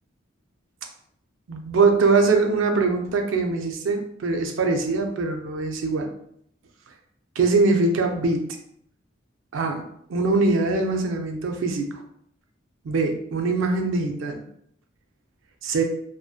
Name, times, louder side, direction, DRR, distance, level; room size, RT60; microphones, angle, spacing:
voice 1, 1.5-6.1 7.4-8.5 9.5-12.0 12.8-14.4 15.6-15.8, right 3 dB, 75° right, 4 dB, 0.4 m, -22 dB
2.6 x 2.1 x 2.3 m, 0.67 s
head